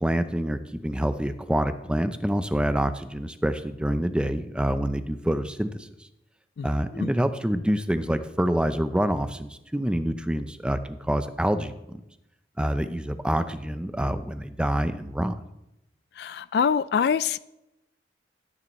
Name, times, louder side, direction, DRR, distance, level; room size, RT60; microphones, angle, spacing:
voice 1, 0.0-5.9 6.6-12.0 12.6-15.3, equal, 5° right, 9 dB, 0.5 m, -26 dB
voice 2, 16.2-17.4, left 7 dB, 60° left, 17 dB, 0.3 m, -24 dB
14.0 x 9.5 x 3.1 m, 0.87 s
head